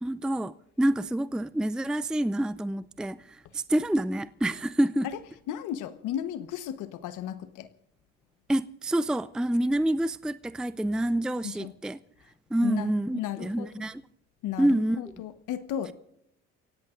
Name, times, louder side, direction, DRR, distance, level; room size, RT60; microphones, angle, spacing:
voice 1, 0.0-5.1 8.5-12.0 12.5-14.0 14.6-15.2, right 1 dB, ahead, 0.5 m, -27 dB
voice 2, 5.5-7.7 11.4-11.7 12.6-13.8 14.4-15.9, left 10 dB, 75° left, 1.2 m, -34 dB
29.5 x 16.5 x 2.5 m
supercardioid pair, 80°, 31 cm